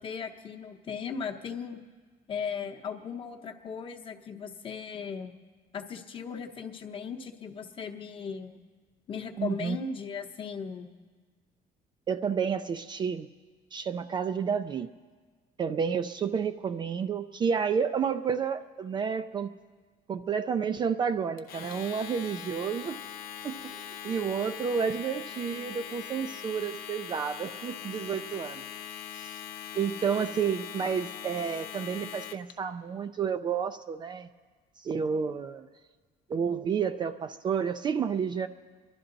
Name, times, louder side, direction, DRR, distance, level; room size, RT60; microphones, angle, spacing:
voice 1, 0.0-1.8 2.3-5.3 5.7-8.6 9.1-10.9, left 6 dB, 35° left, 4 dB, 0.9 m, -37 dB
voice 2, 9.4-9.8 12.1-13.3 13.7-14.9 15.6-19.5 20.1-23.0 23.4-23.7 24.0-28.6 29.1-29.4 29.8-34.3 34.8-35.7 36.3-38.5, right 6 dB, 30° right, 10 dB, 0.4 m, -30 dB
Domestic sounds home sounds, 21.4-32.5, left 10 dB, 75° left, 0.9 m, -41 dB
27.5 x 11.5 x 3.9 m, 1.5 s
cardioid pair, 165°, 15 cm